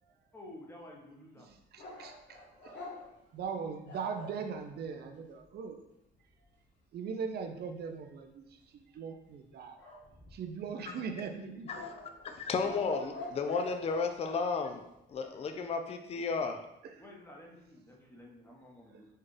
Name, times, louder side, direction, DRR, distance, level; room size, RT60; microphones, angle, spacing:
voice 1, 0.3-1.6 17.0-19.1, left 1 dB, 10° left, -2 dB, 0.9 m, -51 dB
voice 2, 1.7-2.8 3.3-5.8 6.9-9.8 10.3-11.9 16.8-16.9 18.9-19.0, right 6 dB, 55° right, 5 dB, 0.5 m, -40 dB
sound 1, 1.8-4.4 9.8-10.7 11.7-14.4, left 2 dB, 65° left, 1.3 m, -44 dB
voice 3, 12.2-14.8 15.1-16.6, left 4 dB, 30° left, 6 dB, 0.4 m, -33 dB
4.3 x 2.3 x 3.2 m, 0.86 s
cardioid pair, 90°, 20 cm